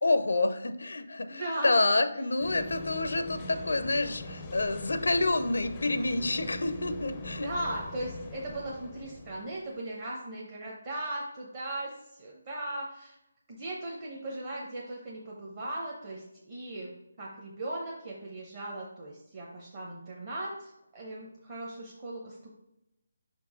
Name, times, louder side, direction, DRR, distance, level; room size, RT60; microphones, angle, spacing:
voice 1, 0.0-7.5, left 2 dB, 85° left, 9 dB, 0.6 m, -28 dB
voice 2, 1.3-1.7 7.4-13.1 13.5-22.4, right 1 dB, 30° right, -4 dB, 0.9 m, -38 dB
sound 1, 2.4-9.7, left 1 dB, 15° left, 0.5 m, -42 dB
5.6 x 4.6 x 3.7 m, 0.88 s
hypercardioid pair, 175°, 0 cm